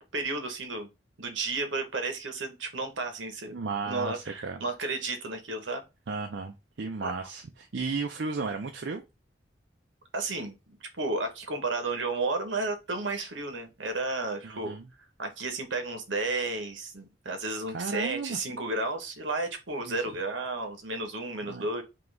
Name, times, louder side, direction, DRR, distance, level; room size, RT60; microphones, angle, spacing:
voice 1, 0.1-0.9 1.2-3.5 3.9-5.8 7.0-7.1 10.1-14.7 15.2-21.8, right 3 dB, 85° right, 1.1 m, -32 dB
voice 2, 3.5-4.6 6.1-9.0 14.4-14.9 17.7-18.4 19.8-20.0 21.4-21.7, right 4 dB, 65° right, 0.5 m, -34 dB
3.8 x 2.9 x 3.3 m
head